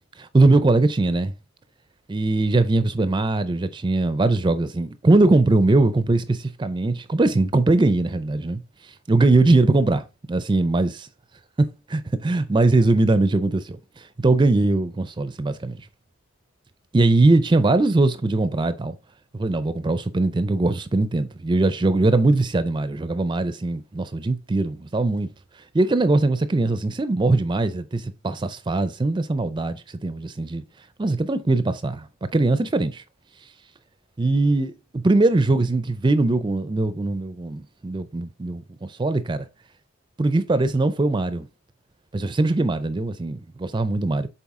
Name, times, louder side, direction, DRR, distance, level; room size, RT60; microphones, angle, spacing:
voice 1, 0.2-1.3 2.1-8.6 9.1-11.1 11.6-15.8 16.9-19.0 19.3-25.3 25.7-30.6 31.0-32.1 32.3-33.0 34.2-39.5 40.2-41.5 42.1-44.3, right 2 dB, 20° right, 0.4 m, -21 dB
7.1 x 4.1 x 3.6 m
head